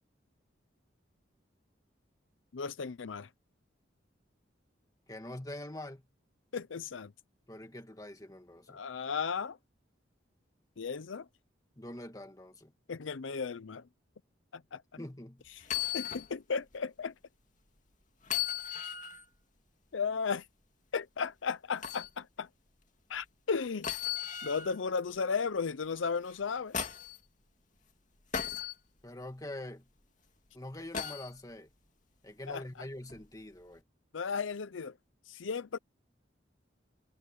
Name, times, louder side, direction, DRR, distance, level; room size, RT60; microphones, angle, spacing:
voice 1, 2.5-3.3 6.5-7.1 8.7-9.6 10.8-11.3 12.9-13.8 14.5-14.8 15.9-17.1 19.9-20.4 20.9-22.5 23.1-23.9 24.4-26.8 32.5-32.6 34.1-34.9 35.3-35.8, left 5 dB, 85° left, 0.6 m, -35 dB
voice 2, 5.1-6.1 7.5-8.8 11.8-12.7 15.0-15.5 29.0-29.9 30.5-31.7 32.2-33.8, left 1 dB, 20° left, 2.0 m, -44 dB
sound 1, 15.6-16.3 16.7-16.8 18.2-19.2 21.8-22.1 23.8-24.8 26.2-27.2 28.3-28.7 30.9-31.3 33.1-33.2, left 9 dB, 40° left, 2.4 m, -36 dB
head